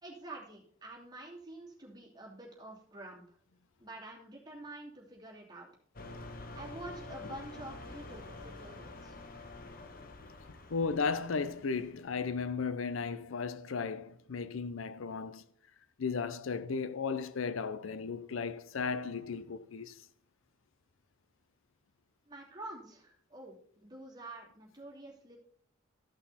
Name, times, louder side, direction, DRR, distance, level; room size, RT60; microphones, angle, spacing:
voice 1, 0.0-3.4 3.8-5.7 6.5-9.2 22.2-25.4, right 2 dB, 20° right, 2.7 m, -48 dB
sound 1, 6.0-12.2, left 2 dB, 45° left, 1.0 m, -48 dB
voice 2, 10.7-15.5 16.0-20.0, left 5 dB, 75° left, 0.5 m, -35 dB
13.5 x 5.8 x 4.1 m
head